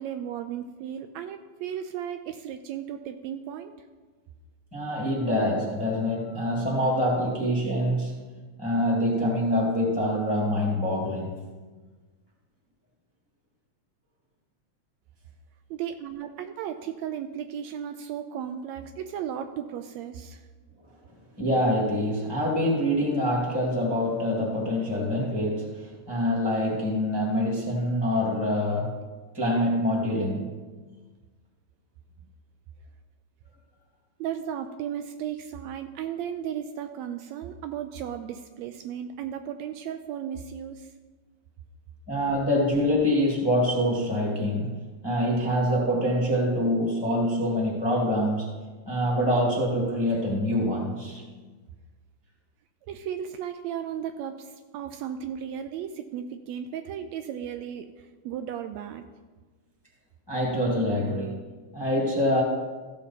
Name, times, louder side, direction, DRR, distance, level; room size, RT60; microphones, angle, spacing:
voice 1, 0.0-3.7 15.7-20.4 34.2-40.9 52.9-59.0, right 9 dB, 80° right, 8 dB, 1.7 m, -35 dB
voice 2, 4.7-8.1 8.6-11.3 21.4-28.9 29.3-30.6 42.1-44.8 45.0-48.5 48.9-51.2 60.3-62.4, equal, 10° left, -3 dB, 1.3 m, -25 dB
14.5 x 6.8 x 4.1 m, 1.3 s
omnidirectional pair, 3.3 m